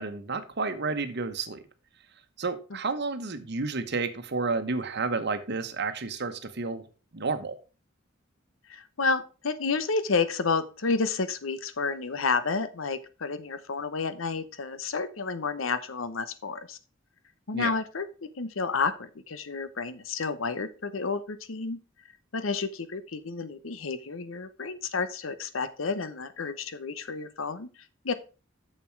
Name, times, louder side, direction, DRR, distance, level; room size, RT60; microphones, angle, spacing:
voice 1, 0.0-1.6 2.4-6.8 7.1-7.6 17.5-17.7, right 4 dB, 55° right, 10 dB, 1.0 m, -31 dB
voice 2, 8.7-16.8 17.5-18.1 18.4-21.8 22.3-27.7 28.0-28.1, left 4 dB, 80° left, 13 dB, 0.9 m, -30 dB
7.2 x 6.9 x 4.5 m, 0.34 s
head